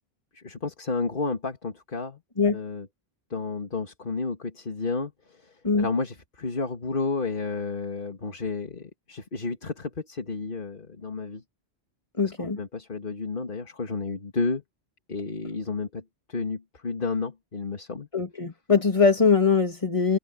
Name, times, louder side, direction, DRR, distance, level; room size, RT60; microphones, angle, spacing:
voice 1, 0.3-2.2 2.5-2.9 3.3-5.1 5.4-11.4 12.4-14.6 15.1-16.0 16.3-18.1, left 4 dB, 55° left, 2.1 m, -31 dB
voice 2, 12.2-12.6 18.1-20.2, left 5 dB, 30° left, 2.4 m, -22 dB
open air
omnidirectional pair, 1.1 m